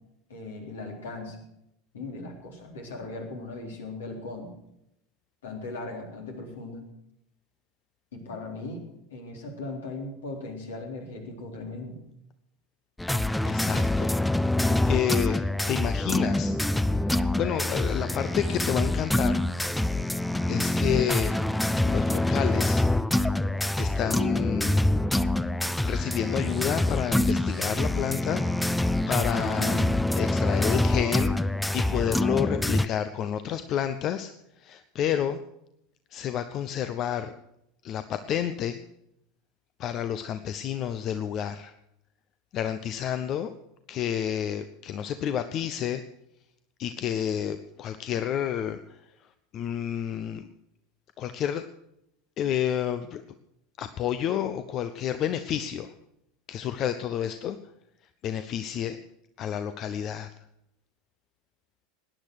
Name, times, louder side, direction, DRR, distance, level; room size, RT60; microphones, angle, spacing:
voice 1, 0.3-1.4 1.9-4.6 5.4-6.8 8.1-8.8 9.1-12.0 29.6-29.9, left 2 dB, 70° left, 2 dB, 3.8 m, -38 dB
sound 1, 13.0-32.9, left 1 dB, 5° left, 0.6 m, -25 dB
voice 2, 13.4-14.1 14.7-16.5 17.4-19.5 20.5-21.4 21.8-22.8 23.8-24.8 25.8-29.8 30.1-31.4 31.7-34.3 34.6-35.4 36.1-37.3 37.8-38.8 39.8-41.7 42.5-43.5 43.9-46.0 46.8-48.8 49.5-50.5 51.2-51.6 52.4-53.2 53.8-55.9 56.5-57.6 58.2-59.0 59.4-60.3, left 10 dB, 40° left, 11 dB, 0.8 m, -30 dB
18.0 x 10.0 x 6.5 m, 0.80 s
figure-of-eight pair, 80°, 0 cm